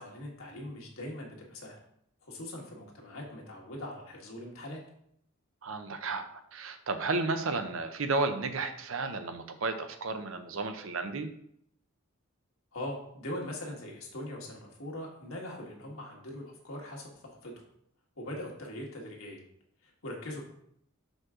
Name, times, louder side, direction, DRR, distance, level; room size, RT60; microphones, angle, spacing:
voice 1, 0.0-1.7 2.2-4.8 12.7-17.6 18.2-19.4 19.8-20.4, left 1 dB, 75° left, -1 dB, 1.7 m, -41 dB
voice 2, 5.6-6.2 6.5-11.3, right 3 dB, 65° right, 8 dB, 0.7 m, -32 dB
6.1 x 5.2 x 3.7 m, 0.71 s
head